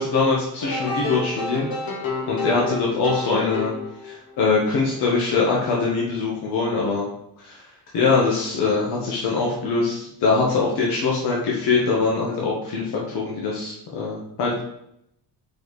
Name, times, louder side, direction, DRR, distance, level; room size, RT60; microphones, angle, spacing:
voice 1, 0.0-1.7 2.3-3.7 4.0-7.0 7.4-7.6 7.9-14.6, left 4 dB, 85° left, -4 dB, 1.6 m, -22 dB
sound 1, 0.6-4.4, left 3 dB, 65° left, 1.5 m, -30 dB
5.2 x 4.5 x 4.8 m, 0.75 s
cardioid pair, 135°, 39 cm